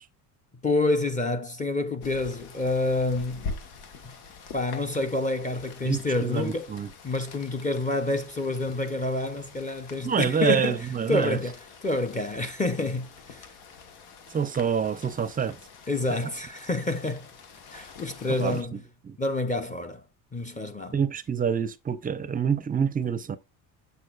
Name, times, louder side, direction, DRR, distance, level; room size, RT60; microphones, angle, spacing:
voice 1, 0.6-3.4 4.5-6.7 7.0-13.5 15.9-17.3 17.7-18.8 19.2-20.0 20.3-21.0, left 2 dB, 20° left, 0.8 m, -28 dB
Rain, 2.0-18.6, left 4 dB, 80° left, 1.6 m, -45 dB
voice 2, 5.8-6.9 10.0-11.4 14.3-15.6 18.4-18.8 19.0-19.2 20.9-23.4, right 7 dB, 20° right, 0.5 m, -27 dB
7.0 x 6.6 x 2.4 m
cardioid pair, 120°, 39 cm